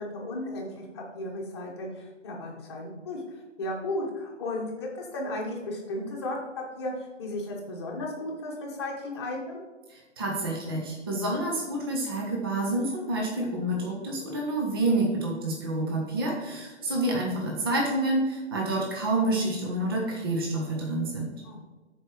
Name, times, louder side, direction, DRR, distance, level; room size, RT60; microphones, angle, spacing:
voice 1, 0.0-3.2 3.6-6.9 7.2-9.6 21.4-21.6, left 1 dB, 20° left, -1 dB, 1.2 m, -34 dB
voice 2, 9.9-21.3, right 2 dB, 20° right, -1 dB, 0.8 m, -28 dB
12.5 x 4.7 x 3.2 m, 1.2 s
figure-of-eight pair, 140°, 37 cm